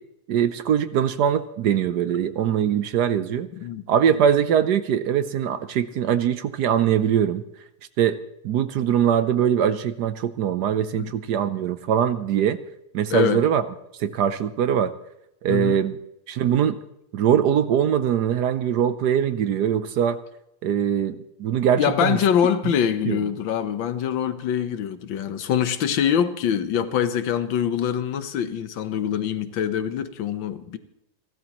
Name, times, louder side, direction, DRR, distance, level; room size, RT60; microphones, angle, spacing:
voice 1, 0.3-3.5 3.9-7.4 8.0-8.2 8.4-12.6 12.9-13.6 14.0-14.9 15.4-16.0 16.3-16.8 17.1-20.2 20.6-22.2 22.6-22.7 23.0-23.2, right 9 dB, 65° right, 1.2 m, -22 dB
voice 2, 13.1-13.4 15.5-15.8 21.8-30.8, left 8 dB, 80° left, 1.7 m, -24 dB
29.5 x 12.5 x 3.0 m
omnidirectional pair, 2.1 m